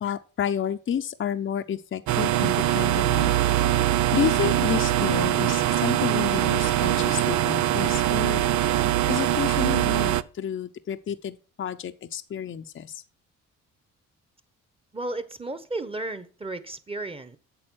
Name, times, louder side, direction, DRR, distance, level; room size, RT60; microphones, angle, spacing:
voice 1, 0.0-3.3 4.1-8.7 9.1-13.0, left 9 dB, 45° left, 0.7 m, -30 dB
sound 1, 2.1-10.2, right 12 dB, 70° right, 0.6 m, -23 dB
voice 2, 14.9-17.4, right 2 dB, 20° right, 1.2 m, -33 dB
8.8 x 6.9 x 6.3 m
cardioid pair, 90°, 30 cm